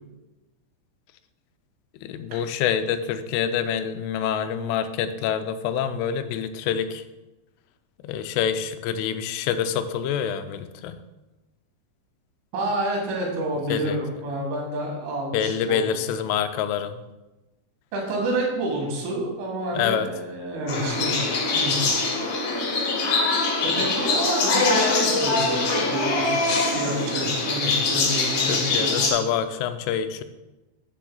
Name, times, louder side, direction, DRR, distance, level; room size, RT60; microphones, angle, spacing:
voice 1, 2.0-7.0 8.0-11.0 13.7-14.0 15.3-17.0 19.7-20.1 28.5-30.2, left 8 dB, 90° left, 10 dB, 3.1 m, -26 dB
voice 2, 12.5-16.0 17.9-21.1 21.5-21.8 23.6-29.1, right 1 dB, 80° right, -1 dB, 4.4 m, -29 dB
sound 1, 20.7-29.1, left 3 dB, 75° left, 1.6 m, -23 dB
11.5 x 7.4 x 2.3 m, 1.1 s
omnidirectional pair, 5.5 m